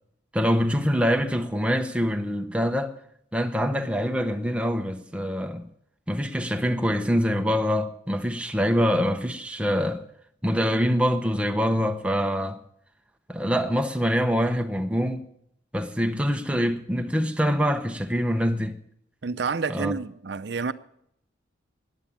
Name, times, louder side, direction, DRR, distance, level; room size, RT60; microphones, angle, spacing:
voice 1, 0.3-2.9 3.3-5.7 6.1-10.0 10.4-12.6 13.3-15.2 15.7-18.8 19.7-20.0, equal, 5° right, 0.8 m, -25 dB
voice 2, 19.2-20.7, right 4 dB, 60° right, 0.6 m, -29 dB
14.5 x 10.0 x 7.1 m
head